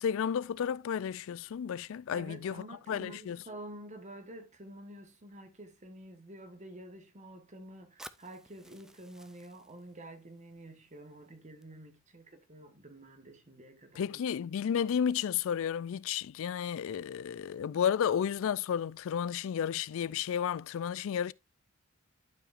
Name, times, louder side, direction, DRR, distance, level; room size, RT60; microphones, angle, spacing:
voice 1, 0.0-3.4 14.0-21.3, left 8 dB, 65° left, 0.3 m, -32 dB
voice 2, 2.1-14.2, right 1 dB, 35° right, 1.3 m, -49 dB
Fire, 8.0-12.0, right 1 dB, ahead, 0.4 m, -56 dB
12.0 x 4.9 x 2.5 m
head